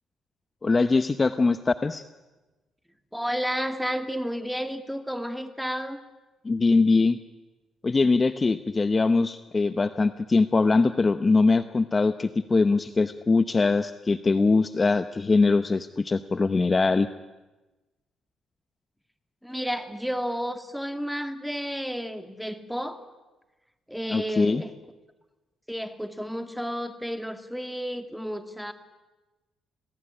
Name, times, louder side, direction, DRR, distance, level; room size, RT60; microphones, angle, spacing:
voice 1, 0.6-2.0 6.4-7.2 7.8-17.1 24.1-24.6, left 3 dB, 30° left, 11 dB, 0.9 m, -22 dB
voice 2, 3.1-6.0 19.4-23.0 23.9-24.7 25.7-28.7, equal, ahead, 8 dB, 2.4 m, -31 dB
27.0 x 17.5 x 9.9 m, 1.1 s
cardioid pair, 90°, 0 cm